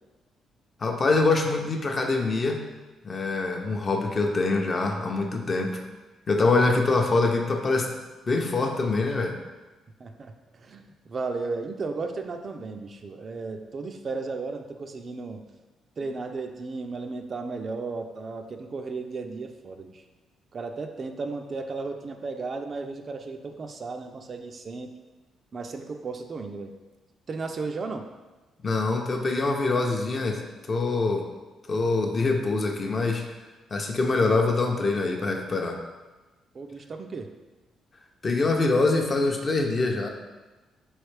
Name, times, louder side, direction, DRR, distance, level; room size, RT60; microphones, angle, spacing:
voice 1, 0.8-2.6 3.0-5.8 6.3-7.9 8.3-9.4 28.6-30.4 30.7-31.2 31.7-33.2 33.7-35.8 38.2-40.1, left 3 dB, 40° left, 3 dB, 0.6 m, -24 dB
voice 2, 10.0-15.4 16.0-20.0 20.5-24.9 25.5-26.7 27.3-28.1 36.5-37.3, right 3 dB, 40° right, 6 dB, 0.3 m, -34 dB
4.2 x 3.2 x 3.2 m, 1.2 s
cardioid pair, 90°, 0 cm